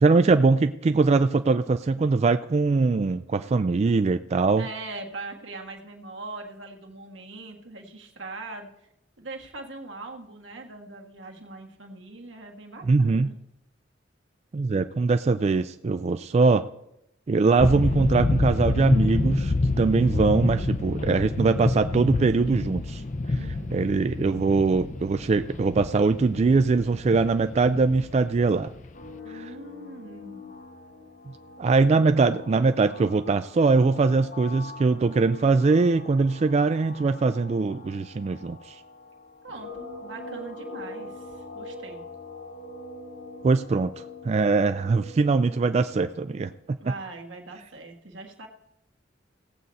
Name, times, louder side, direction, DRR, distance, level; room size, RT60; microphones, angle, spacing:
voice 1, 0.0-4.6 12.9-13.3 14.5-16.6 17.3-23.0 23.7-28.7 31.6-38.7 43.4-43.9 44.2-46.8, right 4 dB, 35° right, 9 dB, 0.3 m, -22 dB
voice 2, 4.6-8.7 9.2-13.3 23.3-23.8 29.2-30.4 39.4-42.1 46.8-48.5, right 2 dB, 90° right, 2 dB, 1.6 m, -41 dB
sound 1, 17.6-29.1, left 2 dB, 40° left, 0.6 m, -28 dB
sound 2, 28.9-46.5, left 2 dB, 70° left, 2.1 m, -43 dB
17.0 x 7.8 x 4.1 m, 0.81 s
head